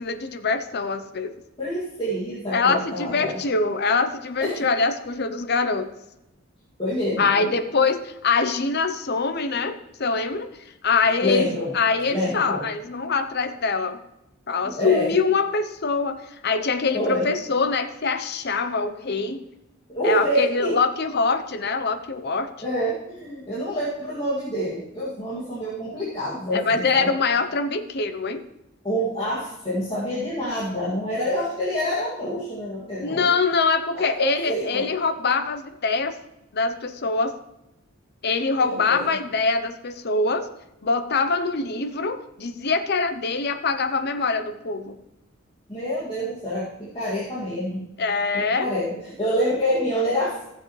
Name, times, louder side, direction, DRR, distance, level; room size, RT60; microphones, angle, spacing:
voice 1, 0.0-1.3 2.5-5.9 7.2-10.5 10.8-14.0 14.5-19.4 20.0-22.5 26.5-28.4 33.0-36.1 36.5-37.4 38.2-40.5 40.8-45.0 48.0-48.7, left 4 dB, 55° left, 9 dB, 0.8 m, -24 dB
voice 2, 1.6-3.4 4.4-4.6 6.8-7.5 11.2-11.7 12.1-12.6 14.6-15.1 16.9-17.3 19.9-20.8 22.6-27.1 28.8-33.3 33.9-34.9 38.5-39.2 45.7-47.9 48.3-50.5, equal, 25° left, -8 dB, 2.3 m, -27 dB
15.5 x 7.4 x 3.2 m, 0.90 s
head